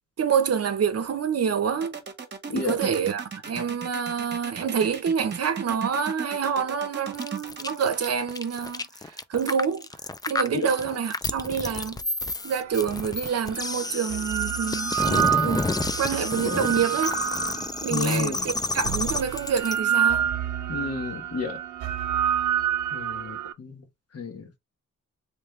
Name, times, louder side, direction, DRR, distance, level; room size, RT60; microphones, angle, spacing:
voice 1, 0.2-1.9 2.5-9.9 10.3-12.0 12.4-15.7 16.0-17.2 17.8-20.3, right 7 dB, 55° right, 0.8 m, -27 dB
sound 1, 1.8-9.6, right 6 dB, 35° right, 1.1 m, -36 dB
voice 2, 2.5-2.8 10.5-10.7 17.9-18.4 20.7-21.6 22.9-23.8 24.1-24.5, left 4 dB, 55° left, 1.3 m, -31 dB
sound 2, 7.1-19.8, left 3 dB, 15° left, 0.4 m, -30 dB
sound 3, 12.8-12.9 13.8-18.1 18.8-23.5, right 9 dB, 85° right, 0.5 m, -28 dB
3.2 x 3.2 x 3.2 m
cardioid pair, 85°, 29 cm